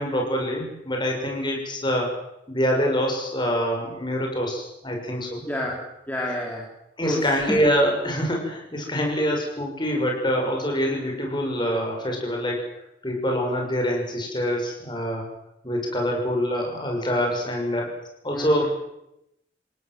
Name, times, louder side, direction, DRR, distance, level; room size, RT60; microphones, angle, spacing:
voice 1, 0.0-2.1 2.5-5.4 7.0-12.6 13.0-15.3 15.6-17.9 18.2-18.7, equal, 25° left, 0 dB, 6.4 m, -25 dB
voice 2, 5.4-6.7 7.0-7.6 18.3-18.7, left 1 dB, 10° left, -3 dB, 3.6 m, -30 dB
29.0 x 17.5 x 7.8 m, 0.84 s
head